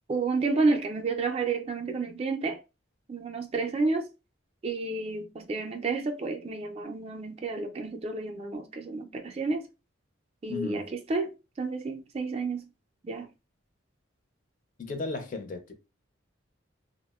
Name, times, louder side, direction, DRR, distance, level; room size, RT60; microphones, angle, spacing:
voice 1, 0.1-2.6 3.1-4.0 4.6-9.6 10.4-12.6 13.0-13.3, right 3 dB, 30° right, 0.3 m, -30 dB
voice 2, 10.5-10.9 14.8-15.7, left 4 dB, 40° left, 0.4 m, -35 dB
3.4 x 2.0 x 2.2 m
head